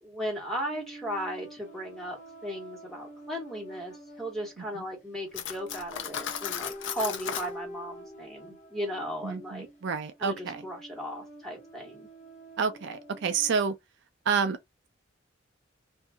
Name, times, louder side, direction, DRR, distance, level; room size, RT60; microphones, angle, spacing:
voice 1, 0.0-9.7 10.2-12.1, equal, ahead, 1.5 m, -36 dB
sound 1, 0.6-13.6, right 1 dB, 40° left, 0.8 m, -48 dB
Cutlery silverware, 5.3-7.5, left 8 dB, 70° left, 0.5 m, -35 dB
voice 2, 9.2-10.6 12.6-13.7 14.3-14.6, right 5 dB, 65° right, 0.4 m, -29 dB
2.7 x 2.6 x 2.2 m
head